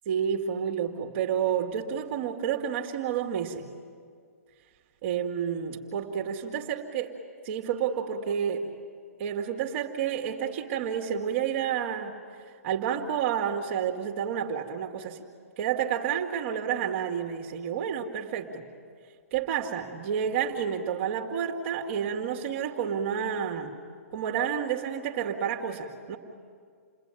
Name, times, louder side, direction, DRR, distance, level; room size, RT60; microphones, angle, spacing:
voice 1, 0.1-3.6 5.0-7.1 7.4-8.7 9.2-12.1 12.6-15.2 15.6-18.6 19.3-23.7 24.1-26.2, right 8 dB, 45° right, 0 dB, 2.2 m, -30 dB
29.0 x 20.5 x 9.1 m, 2.1 s
hypercardioid pair, 140°, 8 cm